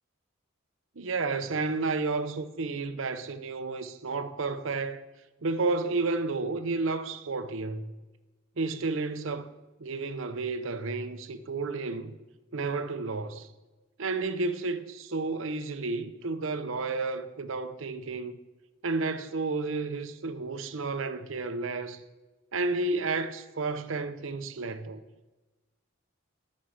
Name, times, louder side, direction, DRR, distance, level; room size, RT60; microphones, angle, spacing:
voice 1, 1.0-5.0 5.4-7.9 8.6-9.5 9.8-12.2 12.5-13.5 14.0-18.4 18.8-22.0 22.5-25.0, right 3 dB, 70° right, 0.7 m, -31 dB
13.0 x 6.4 x 5.7 m
head